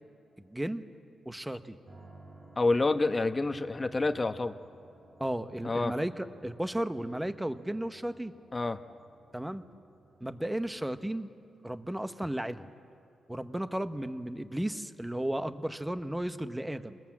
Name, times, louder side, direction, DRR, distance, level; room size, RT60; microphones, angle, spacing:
voice 1, 0.4-0.8 1.2-1.8 5.2-8.3 9.3-9.6 10.2-11.3 11.6-12.7 13.3-17.0, right 1 dB, 5° right, 10 dB, 0.9 m, -34 dB
sound 1, 1.8-11.3, right 2 dB, 65° right, 4.6 m, -57 dB
voice 2, 2.6-4.6 5.6-5.9 8.5-8.8, left 3 dB, 25° left, 9 dB, 1.0 m, -28 dB
27.5 x 20.5 x 7.5 m, 2.6 s
cardioid pair, 95°, 0 cm